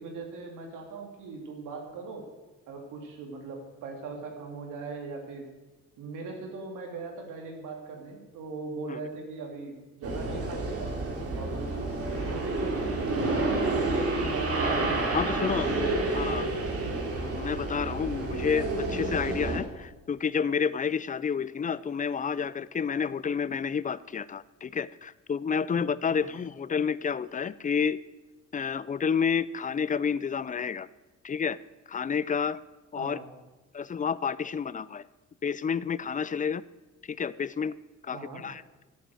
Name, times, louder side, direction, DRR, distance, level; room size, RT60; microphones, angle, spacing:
voice 1, 0.0-2.2 2.7-5.5 6.0-10.9 11.3-13.1 13.6-14.9 15.3-16.8 25.7-26.4 33.0-33.2 38.1-38.4, right 3 dB, 85° right, 2 dB, 2.8 m, -40 dB
sound 1, 10.0-19.6, right 2 dB, 50° right, 2.9 m, -29 dB
voice 2, 15.1-15.8 16.1-16.5 17.2-28.0 28.5-30.9 31.2-31.6 31.9-32.6 32.9-33.2 33.7-35.0 35.4-36.6 37.1-37.7 38.0-38.6, left 6 dB, 25° left, 19 dB, 0.4 m, -30 dB
11.0 x 8.6 x 7.6 m, 1.1 s
cardioid pair, 90°, 30 cm